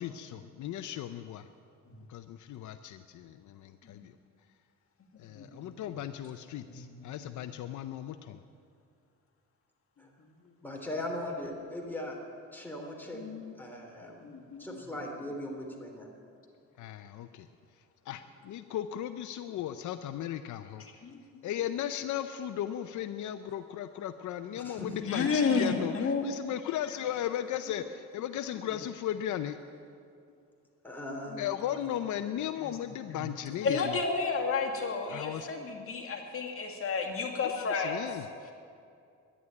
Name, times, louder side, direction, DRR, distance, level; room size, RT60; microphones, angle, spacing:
voice 1, 0.0-1.5 2.1-4.1 5.2-8.4 16.8-17.5 18.1-20.8 21.4-29.6 31.4-34.0 35.1-35.5 37.4-38.3, left 11 dB, 75° left, 10 dB, 0.6 m, -36 dB
voice 2, 5.4-5.7 6.6-7.3 13.1-13.5 14.2-14.8 21.0-21.2 25.0-26.2 31.1-31.4 33.1-33.3 33.6-38.1, left 4 dB, 45° left, 1 dB, 2.2 m, -32 dB
voice 3, 10.6-12.2 12.5-13.2 13.6-14.2 14.6-16.1 24.6-24.9 25.1-25.2 30.8-31.5, left 1 dB, 5° left, 0 dB, 3.4 m, -39 dB
11.0 x 11.0 x 9.4 m, 2.4 s
cardioid pair, 90°, 30 cm